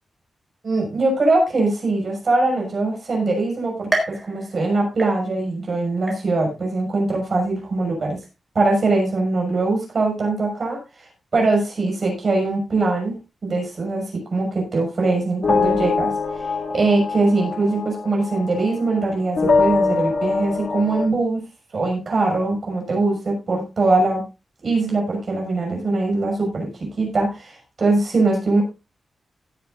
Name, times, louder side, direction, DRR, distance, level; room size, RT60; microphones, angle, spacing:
voice 1, 0.6-8.2 8.5-10.8 11.3-16.5 16.7-21.4 21.7-24.2 24.6-28.6, right 2 dB, 40° right, 1 dB, 6.2 m, -22 dB
sound 1, 3.9-5.6 6.1-6.7 7.2-7.3 8.2-8.3, right 1 dB, 20° right, 4.1 m, -29 dB
sound 2, 15.4-19.1 19.4-21.1, left 4 dB, 40° left, 2.3 m, -23 dB
16.5 x 11.0 x 2.5 m, 0.26 s
wide cardioid pair, 165°, 0 cm